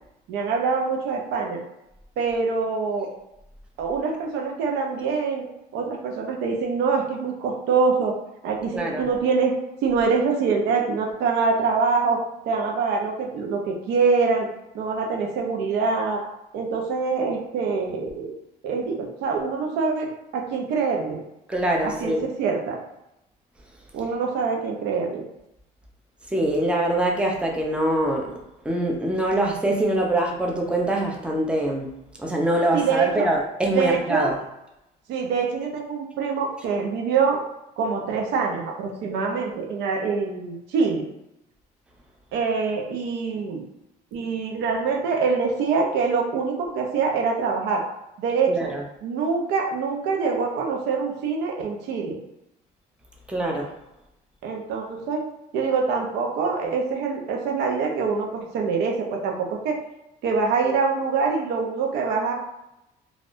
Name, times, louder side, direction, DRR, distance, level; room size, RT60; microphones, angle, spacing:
voice 1, 0.3-1.6 2.2-3.1 3.8-5.5 5.7-8.1 8.4-9.5 9.8-14.5 14.7-16.2 16.5-18.3 18.6-21.2 21.8-22.8 23.9-25.2 32.7-33.3 33.7-34.3 35.1-37.4 37.8-41.1 42.3-43.6 44.1-47.8 48.2-48.7 49.0-52.2 54.4-55.2 55.5-59.8 60.2-62.3, right 5 dB, 85° right, 1 dB, 0.6 m, -25 dB
voice 2, 8.7-9.0 21.5-22.2 26.3-28.4 28.6-31.9 32.2-34.4 48.5-48.8 53.3-53.7, right 1 dB, 5° right, 0 dB, 0.5 m, -24 dB
3.3 x 2.4 x 2.5 m, 0.88 s
cardioid pair, 110°, 17 cm